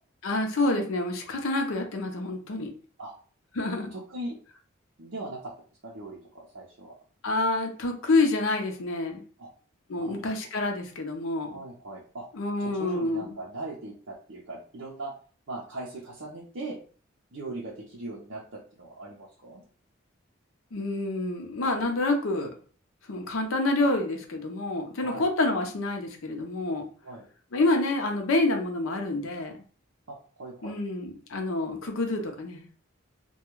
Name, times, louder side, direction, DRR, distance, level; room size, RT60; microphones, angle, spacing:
voice 1, 0.2-2.7 3.6-3.9 7.2-9.2 9.9-11.6 12.3-13.2 20.7-22.5 23.1-26.8 27.5-29.5 30.6-32.7, left 2 dB, 85° left, 3 dB, 0.6 m, -27 dB
voice 2, 3.9-4.4 5.0-5.5 5.8-7.0 9.4-9.5 10.0-10.4 11.5-12.3 12.6-15.1 15.5-16.8 17.3-19.6 25.0-25.3 27.0-27.2 30.1-30.8, right 2 dB, 70° right, -5 dB, 0.6 m, -39 dB
2.3 x 2.2 x 3.0 m, 0.41 s
head